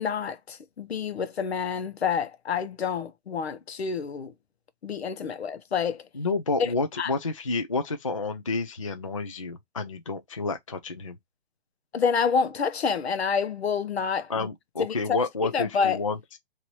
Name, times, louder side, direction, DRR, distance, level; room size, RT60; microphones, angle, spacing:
voice 1, 0.0-4.3 4.8-6.1 6.6-6.7 7.0-7.1 11.9-14.5 14.8-16.0, left 6 dB, 70° left, 0.9 m, -28 dB
voice 2, 6.1-11.2 14.3-16.4, left 3 dB, 30° left, 0.4 m, -30 dB
4.4 x 2.7 x 2.9 m
hypercardioid pair, 175°, 33 cm